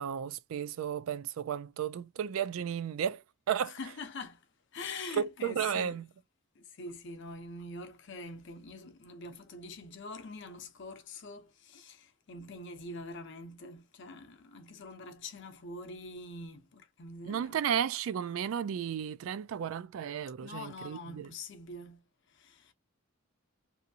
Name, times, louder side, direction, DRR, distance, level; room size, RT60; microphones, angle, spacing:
voice 1, 0.0-3.8 5.1-6.1 17.3-21.3, right 8 dB, 75° right, 0.3 m, -33 dB
voice 2, 3.7-4.4 4.7-6.0 6.6-17.6 20.4-22.0 22.3-22.7, left 2 dB, 60° left, 0.7 m, -44 dB
2.7 x 2.5 x 2.7 m
head